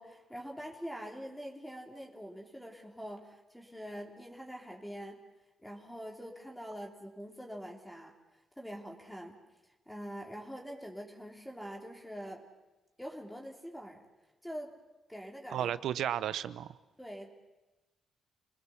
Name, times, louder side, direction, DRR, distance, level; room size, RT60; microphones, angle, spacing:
voice 1, 0.0-5.2 5.6-8.1 8.6-9.4 9.9-12.4 13.0-14.0 14.4-14.7 15.1-15.7 17.0-17.3, equal, 5° left, 0 dB, 3.3 m, -44 dB
voice 2, 15.5-16.8, right 10 dB, 85° right, 16 dB, 0.9 m, -33 dB
28.5 x 20.5 x 7.2 m, 1.1 s
cardioid pair, 100°, 0 cm